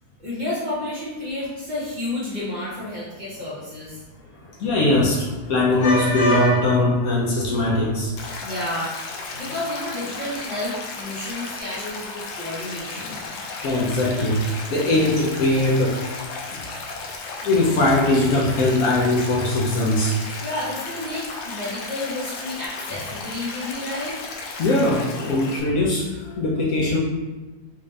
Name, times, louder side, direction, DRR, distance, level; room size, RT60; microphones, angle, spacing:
voice 1, 0.2-4.0 8.4-13.2 20.4-24.2, left 1 dB, 30° right, -9 dB, 0.9 m, -31 dB
voice 2, 4.3-8.4 9.3-9.4 13.0-13.1 13.3-16.0 17.4-20.2 24.6-27.0, left 2 dB, 70° left, -3 dB, 0.8 m, -21 dB
Stream, 8.2-25.6, left 3 dB, 90° left, 1.4 m, -34 dB
3.7 x 2.5 x 3.2 m, 1.1 s
omnidirectional pair, 2.1 m